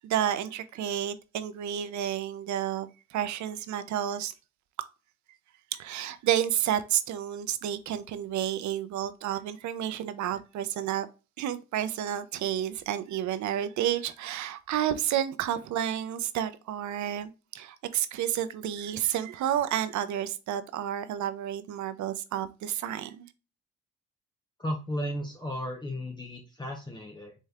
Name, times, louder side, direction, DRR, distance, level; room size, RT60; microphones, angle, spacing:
voice 1, 0.0-4.3 5.7-11.1 11.4-23.3, right 10 dB, 65° right, 0.6 m, -30 dB
voice 2, 24.6-27.3, equal, 15° left, 0.8 m, -34 dB
4.2 x 3.2 x 2.3 m
supercardioid pair, 60°, 31 cm